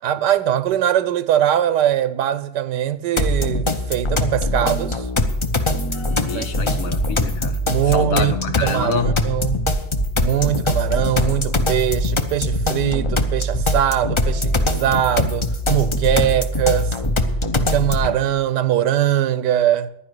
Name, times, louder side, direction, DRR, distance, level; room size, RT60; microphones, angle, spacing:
voice 1, 0.0-5.1 6.3-6.5 7.7-8.3 8.6-9.7 10.2-16.9 17.7-19.9, right 11 dB, 90° right, 1.4 m, -21 dB
sound 1, 3.2-18.2, left 1 dB, 40° left, 0.4 m, -22 dB
voice 2, 6.2-7.6 7.9-9.1, left 5 dB, 60° left, 1.3 m, -26 dB
10.5 x 10.0 x 7.9 m
omnidirectional pair, 1.8 m